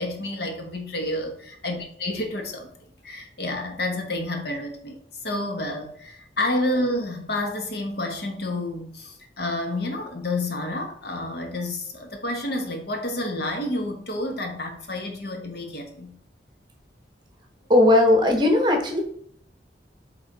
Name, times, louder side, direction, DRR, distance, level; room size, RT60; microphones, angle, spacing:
voice 1, 0.0-2.7 3.0-5.0 5.2-16.1, left 1 dB, 60° left, 3 dB, 1.2 m, -29 dB
voice 2, 17.7-19.0, left 2 dB, 25° right, 3 dB, 1.0 m, -17 dB
8.0 x 3.5 x 3.9 m, 0.64 s
head